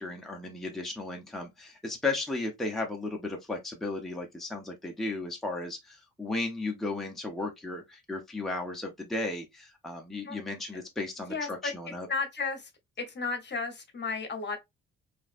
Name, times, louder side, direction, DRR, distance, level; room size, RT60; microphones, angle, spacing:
voice 1, 0.0-12.1, left 2 dB, ahead, 0.7 m, -35 dB
voice 2, 11.3-11.7 12.1-12.7 13.1-14.6, left 4 dB, 35° left, 0.9 m, -33 dB
3.0 x 2.5 x 2.5 m
cardioid pair, 90°, 30 cm